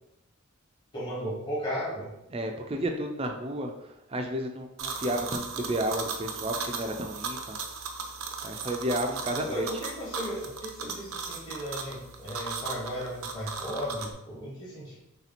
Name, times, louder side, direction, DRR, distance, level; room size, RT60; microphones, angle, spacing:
voice 1, 0.9-2.1 9.4-15.0, equal, 20° left, -8 dB, 1.3 m, -35 dB
voice 2, 2.3-7.6 8.4-9.7, right 1 dB, 25° right, 4 dB, 0.4 m, -32 dB
sound 1, 4.8-14.1, right 5 dB, 80° right, 0.5 m, -37 dB
3.3 x 2.9 x 4.1 m, 0.86 s
head